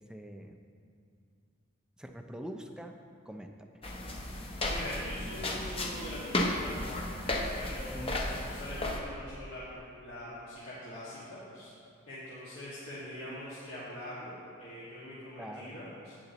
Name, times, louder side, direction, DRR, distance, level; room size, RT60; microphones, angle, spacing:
voice 1, 0.1-0.6 2.0-3.0 3.3-3.5 7.9-8.1 15.4-15.8, equal, 5° right, 4 dB, 0.4 m, -43 dB
sound 1, 3.8-9.0, left 1 dB, 25° left, 0.7 m, -34 dB
voice 2, 4.7-7.0 7.5-11.7 12.1-16.1, left 1 dB, 70° left, -11 dB, 1.8 m, -43 dB
10.5 x 8.7 x 2.9 m, 2.4 s
head